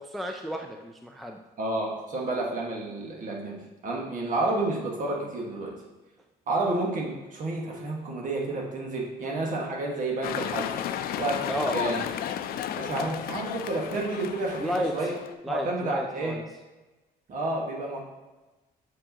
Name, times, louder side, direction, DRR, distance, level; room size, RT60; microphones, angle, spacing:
voice 1, 0.0-1.4 11.5-11.8 14.6-15.1 15.4-16.4, equal, ahead, 3 dB, 0.4 m, -32 dB
voice 2, 1.6-3.6 3.8-5.7 6.5-10.7 11.2-12.0 12.7-15.1 15.5-16.4 17.3-18.0, right 2 dB, 50° right, -1 dB, 1.5 m, -30 dB
sound 1, 10.2-15.3, left 10 dB, 60° left, 0.4 m, -33 dB
7.3 x 4.6 x 2.9 m, 1.1 s
cardioid pair, 110°, 17 cm